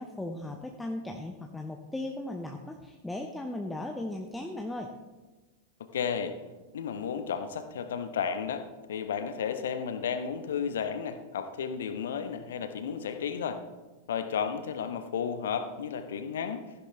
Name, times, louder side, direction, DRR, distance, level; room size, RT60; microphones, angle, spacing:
voice 1, 0.0-4.9, left 1 dB, 5° left, 2 dB, 0.9 m, -37 dB
voice 2, 5.9-6.4 6.7-13.6 14.1-16.6, left 7 dB, 60° left, 9 dB, 1.0 m, -33 dB
15.0 x 10.5 x 3.3 m, 1.2 s
figure-of-eight pair, 90°, 0 cm